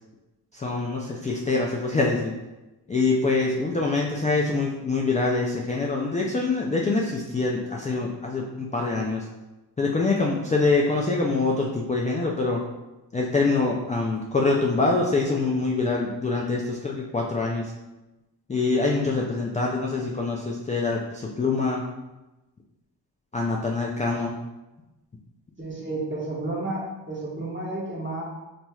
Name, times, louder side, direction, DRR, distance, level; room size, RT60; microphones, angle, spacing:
voice 1, 0.5-2.3 2.9-9.3 9.8-12.6 13.1-17.7 18.5-21.8 23.3-24.3, left 3 dB, 20° left, -1 dB, 0.3 m, -25 dB
voice 2, 25.6-28.2, right 2 dB, 25° right, -4 dB, 1.1 m, -31 dB
3.1 x 2.8 x 2.3 m, 1.1 s
cardioid pair, 45°, 44 cm